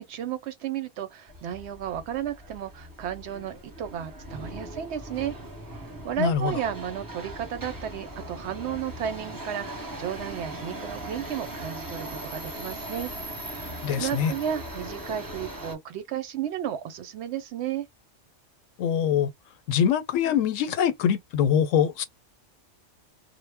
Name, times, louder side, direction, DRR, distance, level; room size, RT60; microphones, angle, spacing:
voice 1, 0.0-5.3 6.0-13.1 14.0-17.9, right 9 dB, 70° right, 0.8 m, -33 dB
Subway metro underground, 1.3-15.7, right 1 dB, 20° right, 0.7 m, -39 dB
voice 2, 6.2-6.6 13.8-14.3 18.8-19.3 19.7-22.0, left 8 dB, 85° left, 1.0 m, -23 dB
2.0 x 2.0 x 3.3 m
omnidirectional pair, 1.3 m